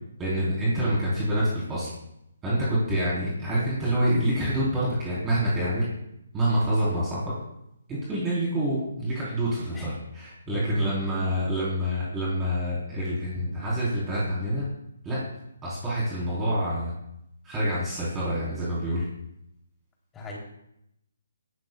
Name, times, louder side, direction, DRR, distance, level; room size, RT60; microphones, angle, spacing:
voice 1, 0.2-1.9 2.4-5.9 6.3-7.2 7.9-14.7 15.0-15.2 15.6-16.9 17.4-19.0, right 1 dB, 15° right, -9 dB, 3.9 m, -27 dB
voice 2, 10.5-11.3 20.1-20.4, left 2 dB, 10° left, -2 dB, 3.2 m, -36 dB
18.0 x 12.5 x 2.3 m, 0.80 s
hypercardioid pair, 155°, 0 cm